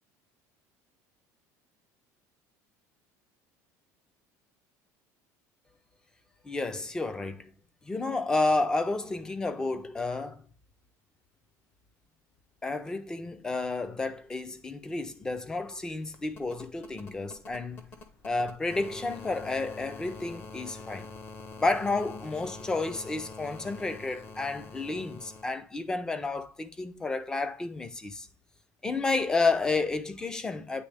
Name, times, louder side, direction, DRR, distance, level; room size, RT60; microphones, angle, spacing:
voice 1, 6.4-7.5 7.8-10.4 12.6-17.8 18.2-21.1 21.6-28.3 28.8-30.8, left 3 dB, 10° left, 0.4 m, -31 dB
sound 1, 14.2-14.3 14.5-25.4 26.9-27.0, left 3 dB, 30° left, 0.7 m, -46 dB
9.0 x 3.4 x 3.3 m
cardioid pair, 180°, 7 cm